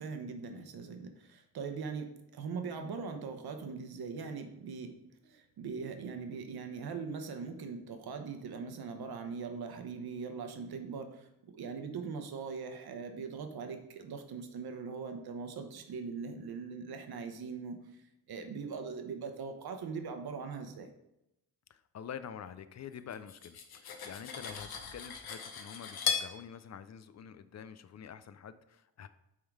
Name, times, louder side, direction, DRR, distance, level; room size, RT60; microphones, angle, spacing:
voice 1, 0.0-4.9 5.2-17.8 18.3-20.9, right 5 dB, 85° right, 6 dB, 1.0 m, -41 dB
voice 2, 21.7-29.1, left 8 dB, 50° left, 13 dB, 0.4 m, -47 dB
Cutlery silverware, 23.1-26.3, left 7 dB, 80° left, 1.0 m, -37 dB
8.6 x 3.7 x 4.7 m, 0.86 s
wide cardioid pair, 155°, 36 cm